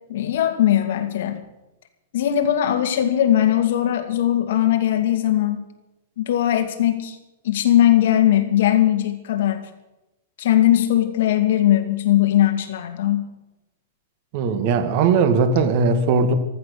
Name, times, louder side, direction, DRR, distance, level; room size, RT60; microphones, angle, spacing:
voice 1, 0.1-1.4 2.1-5.6 6.2-7.1 7.4-9.6 10.4-13.2, left 12 dB, 60° left, 6 dB, 2.4 m, -19 dB
voice 2, 14.3-16.3, right 5 dB, 35° right, 9 dB, 1.6 m, -19 dB
14.5 x 14.0 x 6.7 m, 0.97 s
supercardioid pair, 170°, 0 cm